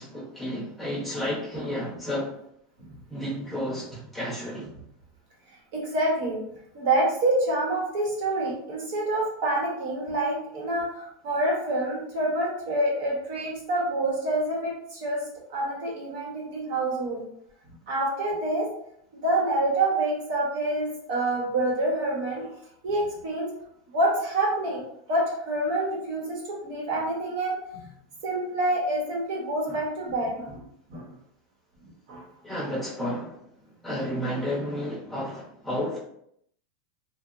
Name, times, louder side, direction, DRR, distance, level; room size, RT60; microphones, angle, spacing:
voice 1, 0.0-2.4 3.1-4.7 32.4-33.4 33.8-36.0, equal, ahead, -8 dB, 0.7 m, -31 dB
voice 2, 5.7-6.4 6.7-15.2 15.5-17.2 17.9-18.7 19.1-22.5 22.8-23.5 23.9-24.8 25.1-27.6 28.2-30.6 30.9-31.0 32.1-32.2, right 1 dB, 55° right, -2 dB, 0.8 m, -27 dB
2.8 x 2.0 x 2.4 m, 0.73 s
supercardioid pair, 165°, 0 cm